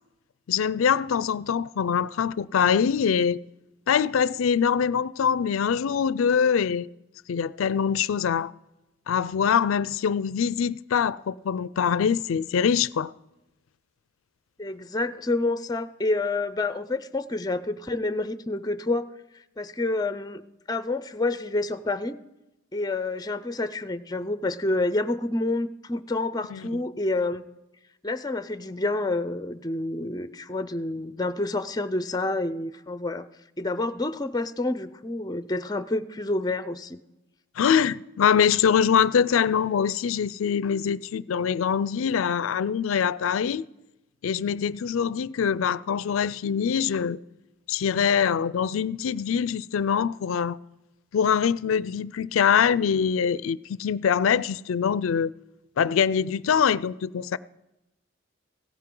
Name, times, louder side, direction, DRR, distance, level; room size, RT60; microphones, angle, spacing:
voice 1, 0.5-3.4 3.9-6.9 7.3-8.5 9.1-13.1 26.5-26.8 37.6-43.6 44.2-47.2 47.7-50.6 51.1-55.3 55.8-57.4, left 7 dB, 80° left, 0.4 m, -24 dB
voice 2, 14.6-19.0 19.6-20.4 20.7-22.2 22.7-27.4 28.0-33.3 33.6-37.0, left 2 dB, 20° left, 0.5 m, -28 dB
16.5 x 14.0 x 3.8 m
head